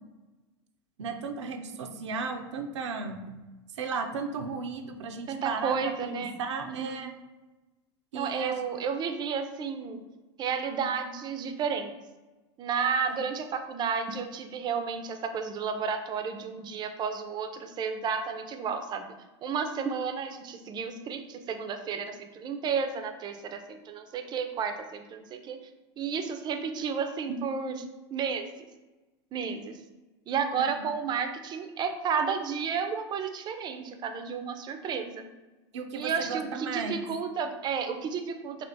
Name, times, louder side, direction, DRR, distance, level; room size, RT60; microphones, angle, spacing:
voice 1, 1.0-3.2 3.8-7.1 8.1-8.5 35.7-37.0, right 4 dB, 85° right, 5 dB, 0.5 m, -35 dB
voice 2, 5.3-6.4 6.7-7.0 8.1-10.0 10.4-11.9 12.6-19.0 19.4-25.6 26.0-27.8 28.1-28.5 29.3-29.8 30.3-35.3 35.9-38.6, right 6 dB, 30° right, 7 dB, 0.5 m, -32 dB
3.4 x 2.4 x 3.9 m, 1.1 s
hypercardioid pair, 115°, 15 cm